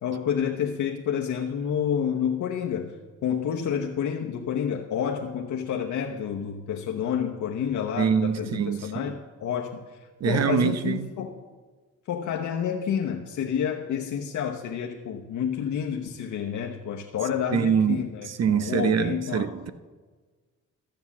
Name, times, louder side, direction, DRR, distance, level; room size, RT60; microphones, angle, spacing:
voice 1, 0.0-2.9 3.2-10.0 10.2-11.4 12.1-19.5, left 8 dB, 85° left, 1.0 m, -29 dB
voice 2, 8.0-9.1 10.2-11.1 17.5-19.7, right 7 dB, 60° right, 0.8 m, -25 dB
13.0 x 7.9 x 7.2 m
cardioid pair, 130°, 29 cm